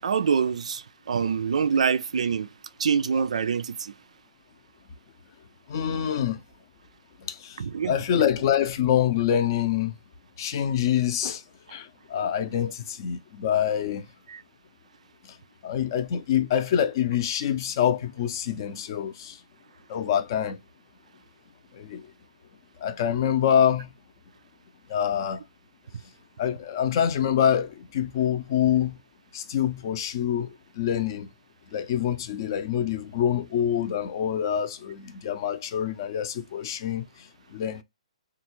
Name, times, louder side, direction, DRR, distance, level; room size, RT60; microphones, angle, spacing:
voice 1, 0.0-2.5 2.8-3.9 7.6-8.0 14.3-14.4, right 6 dB, 75° right, 0.3 m, -25 dB
voice 2, 5.7-6.4 7.3-7.6 7.9-9.9 10.4-11.4 11.7-14.0 15.6-19.4 19.9-20.6 21.8-22.0 22.8-23.9 24.9-25.4 26.4-29.0 29.3-31.3 31.7-37.1 37.5-37.8, left 9 dB, 35° left, 0.5 m, -26 dB
3.4 x 2.4 x 2.9 m
hypercardioid pair, 160°, 4 cm